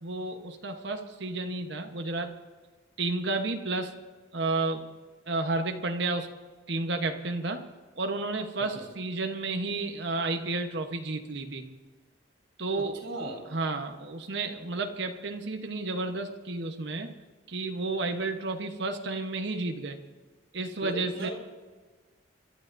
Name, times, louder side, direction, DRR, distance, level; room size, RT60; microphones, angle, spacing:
voice 1, 0.0-2.4 3.0-4.0 4.3-4.9 5.3-6.3 6.7-7.6 8.0-11.7 12.6-13.0 13.5-17.1 17.5-20.0 20.5-21.3, right 3 dB, 60° right, 5 dB, 1.0 m, -31 dB
voice 2, 12.7-13.5 20.8-21.3, right 1 dB, 75° right, 0 dB, 3.4 m, -38 dB
27.5 x 12.0 x 2.6 m, 1.4 s
head